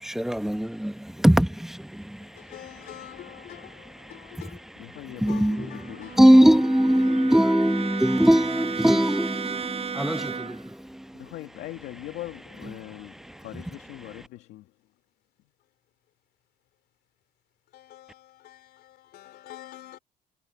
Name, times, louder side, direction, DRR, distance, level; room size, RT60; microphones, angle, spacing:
voice 1, 0.0-2.2 5.2-11.0, equal, ahead, 1.1 m, -21 dB
voice 2, 2.3-6.4 6.9-8.2 17.7-20.0, left 13 dB, 70° left, 3.1 m, -47 dB
voice 3, 4.8-6.6 11.2-14.7, left 16 dB, 90° left, 2.3 m, -41 dB
Brass instrument, 5.1-10.7, right 6 dB, 35° right, 7.9 m, -35 dB
cardioid pair, 110°, 17 cm